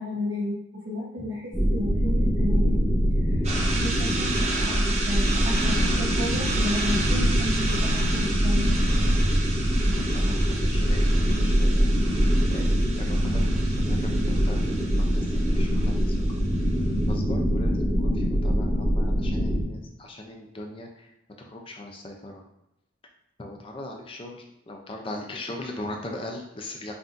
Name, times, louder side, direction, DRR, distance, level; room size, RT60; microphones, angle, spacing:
voice 1, 0.0-1.4 1.7-2.7 3.3-8.7, left 1 dB, 80° right, -10 dB, 1.1 m, -32 dB
sound 1, 1.5-19.6, equal, ahead, 0.9 m, -23 dB
sound 2, 3.4-16.8, right 3 dB, 35° right, 0.6 m, -33 dB
voice 2, 10.1-11.9 12.5-16.3 17.0-21.1 21.4-22.4 23.4-26.9, left 1 dB, 30° left, 2 dB, 0.5 m, -39 dB
5.6 x 2.6 x 2.5 m, 0.86 s
head